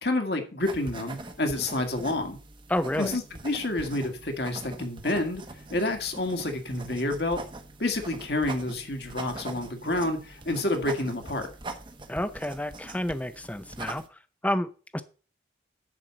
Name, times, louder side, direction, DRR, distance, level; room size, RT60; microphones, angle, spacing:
voice 1, 0.0-2.4 3.0-5.4 5.7-7.4 7.8-11.5, left 2 dB, 60° left, 2.0 m, -29 dB
sound 1, 0.6-14.1, right 2 dB, 25° right, 1.0 m, -43 dB
voice 2, 2.7-3.2 12.1-14.0 14.4-15.0, left 1 dB, 10° left, 0.6 m, -30 dB
10.5 x 4.7 x 7.4 m
head